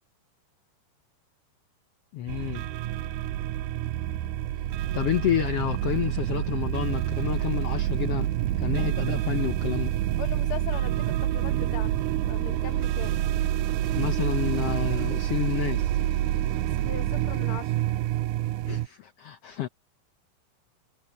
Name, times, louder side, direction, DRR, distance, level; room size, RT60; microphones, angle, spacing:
voice 1, 2.1-2.6 4.9-8.3 8.6-9.9 13.9-15.9 18.7-19.7, left 12 dB, 85° left, 1.3 m, -29 dB
sound 1, 2.3-18.9, right 13 dB, 75° right, 2.1 m, -27 dB
voice 2, 10.2-11.9 12.3-13.2 16.8-17.7, left 11 dB, 65° left, 1.3 m, -39 dB
omnidirectional pair, 3.9 m